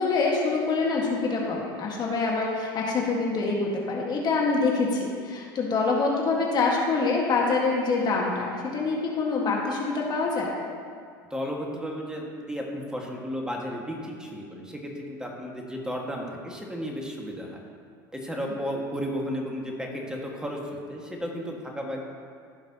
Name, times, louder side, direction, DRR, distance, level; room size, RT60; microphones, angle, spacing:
voice 1, 0.0-10.5, left 3 dB, 40° left, -2 dB, 1.7 m, -25 dB
voice 2, 11.3-17.6 18.1-22.0, equal, 5° right, -1 dB, 1.8 m, -33 dB
15.5 x 5.9 x 3.0 m, 2.2 s
hypercardioid pair, 85°, 11 cm